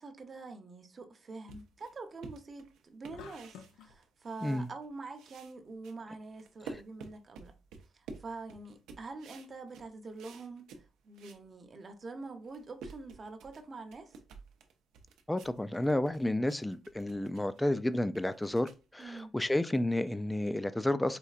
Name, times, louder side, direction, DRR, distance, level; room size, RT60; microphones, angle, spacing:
voice 1, 0.0-7.5 7.9-14.2 19.0-19.3, right 3 dB, 40° right, 0.8 m, -45 dB
sound 1, 1.5-4.9 5.1-11.5 11.9-12.0 12.3-20.5, right 4 dB, 85° right, 0.5 m, -52 dB
sound 2, 3.1-4.0, left 7 dB, 90° left, 0.4 m, -50 dB
voice 2, 15.3-21.2, left 1 dB, 10° left, 0.3 m, -31 dB
4.4 x 2.6 x 2.4 m
cardioid pair, 90°, 0 cm